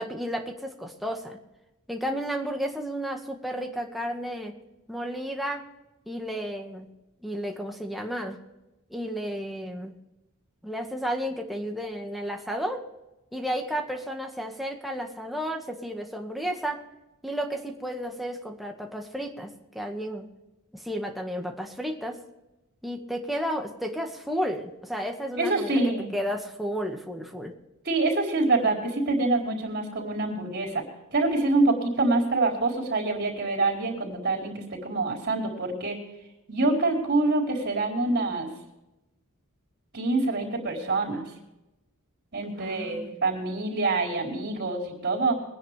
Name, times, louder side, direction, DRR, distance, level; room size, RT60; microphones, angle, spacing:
voice 1, 0.0-1.4 1.9-4.5 4.9-5.6 6.1-6.9 7.2-8.4 8.9-9.9 10.6-12.8 13.3-16.8 17.2-20.3 20.7-22.2 22.8-25.8 26.1-27.5 42.6-43.2, equal, ahead, 1 dB, 1.8 m, -32 dB
voice 2, 25.4-26.2 27.8-30.8 31.1-36.0 36.5-38.5 39.9-41.3 42.3-45.3, right 2 dB, 50° right, -1 dB, 4.4 m, -26 dB
23.5 x 10.5 x 3.5 m, 0.95 s
head